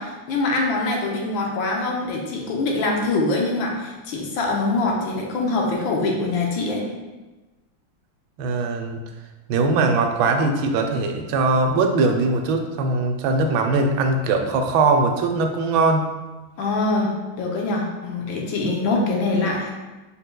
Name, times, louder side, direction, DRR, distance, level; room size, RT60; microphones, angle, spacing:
voice 1, 0.0-6.9 16.6-19.7, left 2 dB, 75° left, -1 dB, 1.4 m, -24 dB
voice 2, 8.4-9.0 9.5-16.1, right 3 dB, 80° right, 4 dB, 1.3 m, -21 dB
5.3 x 4.3 x 2.2 m, 1.2 s
omnidirectional pair, 2.3 m